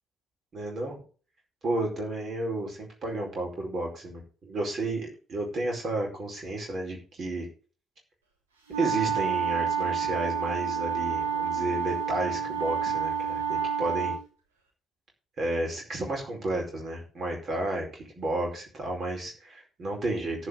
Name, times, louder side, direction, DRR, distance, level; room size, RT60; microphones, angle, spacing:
voice 1, 0.5-0.9 1.6-7.5 8.7-14.1 15.4-20.5, right 2 dB, 45° right, 0 dB, 4.7 m, -32 dB
sound 1, 8.7-14.2, right 7 dB, 85° right, 2.6 m, -29 dB
14.5 x 5.2 x 6.8 m, 0.38 s
figure-of-eight pair, 45°, 0 cm